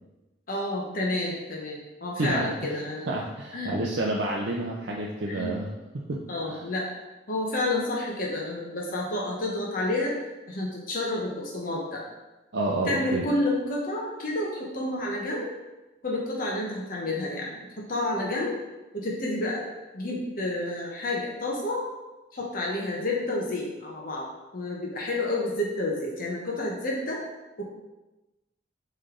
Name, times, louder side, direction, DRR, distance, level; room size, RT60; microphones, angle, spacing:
voice 1, 0.5-3.1 3.5-3.7 5.3-5.5 6.3-6.9 7.3-10.2 10.5-12.0 12.9-15.5 16.0-18.5 18.9-19.6 19.9-21.8 22.3-24.3 24.5-27.2 27.6-27.7, left 2 dB, 50° left, -3 dB, 1.0 m, -30 dB
voice 2, 2.2-2.8 3.1-6.2 6.5-6.6 12.5-13.2, right 2 dB, 75° right, -2 dB, 0.7 m, -29 dB
7.5 x 3.3 x 3.9 m, 1.1 s
head